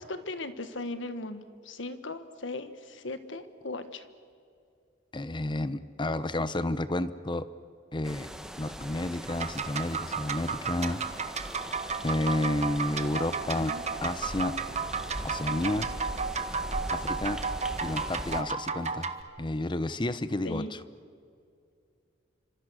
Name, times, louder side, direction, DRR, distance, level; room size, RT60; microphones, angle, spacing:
voice 1, 0.0-4.1 13.5-13.8 20.4-20.7, left 2 dB, 70° left, 10 dB, 1.5 m, -38 dB
voice 2, 5.1-7.5 7.9-8.3 8.6-11.0 12.0-13.7 14.0-14.5 15.2-15.9 16.9-17.4 17.8-20.8, left 1 dB, 25° left, 14 dB, 0.8 m, -31 dB
sound 1, 8.0-18.4, equal, 5° right, 1.3 m, -40 dB
sound 2, 9.3-19.2, right 5 dB, 35° right, 1.3 m, -33 dB
29.5 x 25.5 x 6.5 m, 2.4 s
head